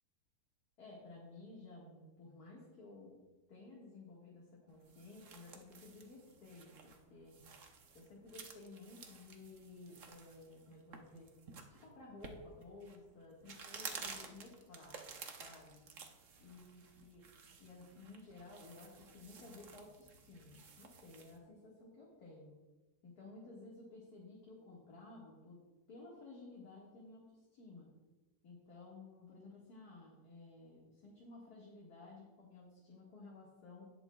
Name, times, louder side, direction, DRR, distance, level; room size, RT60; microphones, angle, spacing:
voice 1, 0.8-3.1 3.5-7.4 7.9-11.3 11.7-15.0 15.4-15.8 16.4-17.2 17.6-22.5 23.0-25.6 25.9-27.9 28.4-33.8, left 3 dB, 65° left, -5 dB, 2.4 m, -55 dB
sound 1, 4.7-21.4, right 5 dB, 55° right, 1.2 m, -53 dB
18.5 x 6.9 x 2.3 m, 1.1 s
omnidirectional pair, 1.8 m